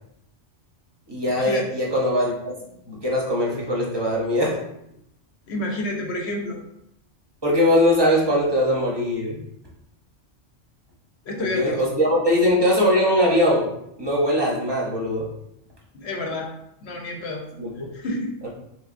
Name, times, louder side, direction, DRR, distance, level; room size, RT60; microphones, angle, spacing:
voice 1, 1.1-2.5 2.9-4.6 7.4-9.5 11.4-13.7 14.0-15.3 17.6-17.9, left 1 dB, 25° right, -3 dB, 0.6 m, -21 dB
voice 2, 5.5-6.6 11.2-11.9 15.9-16.5 16.8-17.4 17.9-18.5, left 1 dB, 65° left, 1 dB, 0.9 m, -29 dB
3.4 x 3.3 x 2.5 m, 0.77 s
omnidirectional pair, 1.3 m